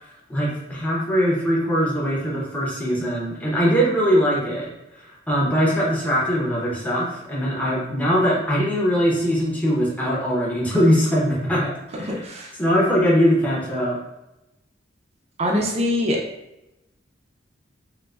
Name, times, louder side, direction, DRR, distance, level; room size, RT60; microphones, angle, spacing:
voice 1, 0.0-12.2 12.6-14.0, equal, 10° left, -5 dB, 0.7 m, -21 dB
voice 2, 12.0-12.5 15.4-16.2, left 1 dB, 35° right, 0 dB, 0.5 m, -23 dB
4.5 x 2.1 x 2.3 m, 0.92 s
head